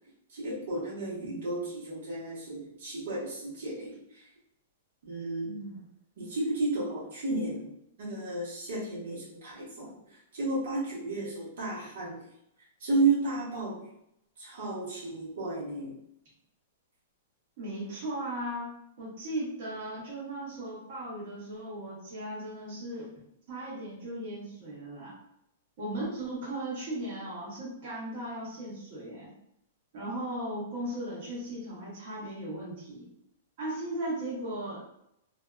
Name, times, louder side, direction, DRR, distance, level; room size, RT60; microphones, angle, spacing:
voice 1, 0.3-4.2 5.1-5.6 6.2-7.7 8.0-9.9 10.3-12.2 12.8-13.8 14.4-15.9, right 3 dB, 70° right, -6 dB, 1.1 m, -32 dB
voice 2, 1.2-1.6 5.4-5.9 17.6-18.7 19.0-23.1 23.5-25.1 25.8-29.3 29.9-33.1 33.6-34.8, right 1 dB, 45° right, -7 dB, 1.0 m, -37 dB
2.7 x 2.3 x 2.2 m, 0.77 s
supercardioid pair, 170°, 0 cm